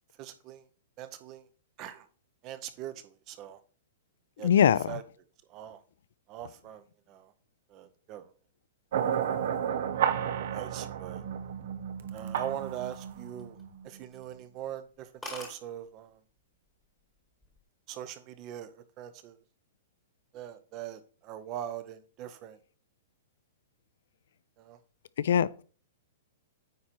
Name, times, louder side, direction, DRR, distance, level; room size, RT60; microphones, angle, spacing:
voice 1, 0.2-0.7 1.0-1.5 1.8-2.1 2.4-3.6 4.4-5.0 5.5-5.8 6.3-7.3 7.7-8.3 10.5-11.2 12.1-13.6 13.8-16.2 17.9-19.4 20.3-22.6 24.6-24.8, right 11 dB, 25° right, 0.7 m, -41 dB
voice 2, 4.4-4.9 25.2-25.6, left 9 dB, 65° left, 0.4 m, -22 dB
sound 1, 8.9-14.2, right 9 dB, 55° right, 0.8 m, -32 dB
sound 2, 12.7-13.7 14.1-14.3 14.7-14.8 15.0-15.1 15.2-15.6 16.5-16.8 17.2-17.6, left 2 dB, ahead, 1.3 m, -43 dB
9.4 x 4.3 x 4.5 m
hypercardioid pair, 170°, 0 cm